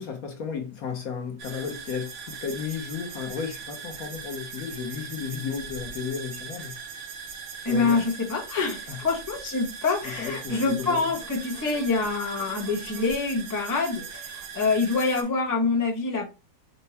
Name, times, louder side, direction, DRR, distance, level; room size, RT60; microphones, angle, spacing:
voice 1, 0.0-6.8 7.7-8.0 8.9-9.0 10.0-11.1, left 6 dB, 60° left, 1.0 m, -33 dB
sound 1, 1.4-15.2, right 6 dB, 80° right, 1.5 m, -40 dB
voice 2, 7.6-16.3, left 4 dB, 15° left, 0.8 m, -26 dB
4.5 x 2.2 x 4.1 m
omnidirectional pair, 2.1 m